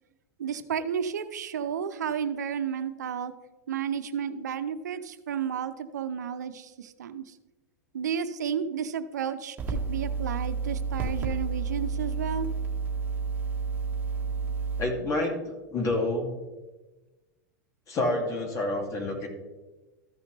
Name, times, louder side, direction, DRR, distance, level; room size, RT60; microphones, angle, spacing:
voice 1, 0.4-3.3 3.7-7.2 7.9-12.5, right 7 dB, 85° right, 10 dB, 0.7 m, -32 dB
sound 1, 9.6-14.8, right 5 dB, 20° right, 2.0 m, -30 dB
voice 2, 14.8-16.3 17.9-19.3, left 2 dB, 35° left, 1 dB, 2.7 m, -28 dB
14.0 x 5.7 x 3.4 m, 1.1 s
hypercardioid pair, 115°, 9 cm